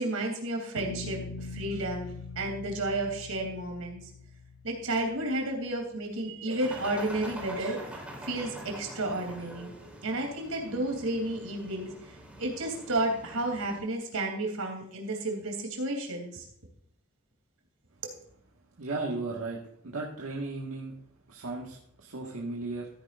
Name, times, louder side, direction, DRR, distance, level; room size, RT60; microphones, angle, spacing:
voice 1, 0.0-4.0 4.6-9.7 10.0-11.9 12.4-16.4, right 2 dB, 90° right, 2 dB, 3.3 m, -32 dB
sound 1, 0.8-5.7, left 3 dB, 85° left, 1.0 m, -43 dB
sound 2, 6.6-13.8, right 1 dB, 5° right, 3.6 m, -45 dB
voice 2, 18.8-19.6 19.8-20.9 21.3-22.9, right 3 dB, 75° right, -4 dB, 1.8 m, -35 dB
15.0 x 9.8 x 2.6 m, 0.67 s
head